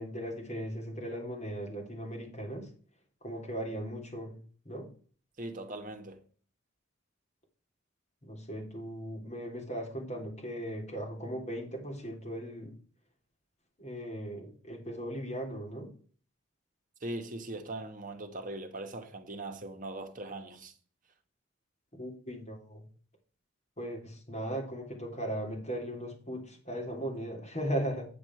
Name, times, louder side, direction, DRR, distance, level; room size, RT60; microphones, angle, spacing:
voice 1, 0.0-2.7 3.2-4.4 4.7-4.9 8.2-12.7 13.8-15.9 22.0-22.8 23.8-28.1, right 1 dB, 35° left, 3.5 m, -38 dB
voice 2, 5.4-6.2 17.0-20.7, right 2 dB, 40° right, 1.3 m, -40 dB
8.8 x 7.2 x 4.7 m
head